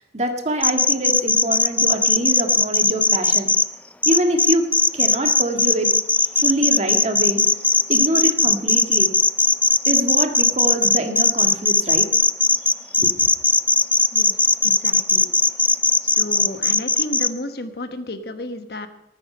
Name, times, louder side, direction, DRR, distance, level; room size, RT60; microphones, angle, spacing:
voice 1, 0.1-3.5 4.1-4.7 4.9-5.9 6.4-7.4 7.9-9.1 9.9-12.1 13.0-13.1, right 1 dB, 40° right, 5 dB, 1.8 m, -24 dB
sound 1, 0.6-3.6 4.0-17.3, left 3 dB, 10° left, 0.4 m, -17 dB
voice 2, 14.1-15.3 16.0-18.9, left 1 dB, 60° left, 9 dB, 1.2 m, -32 dB
19.5 x 9.3 x 5.5 m, 0.89 s
head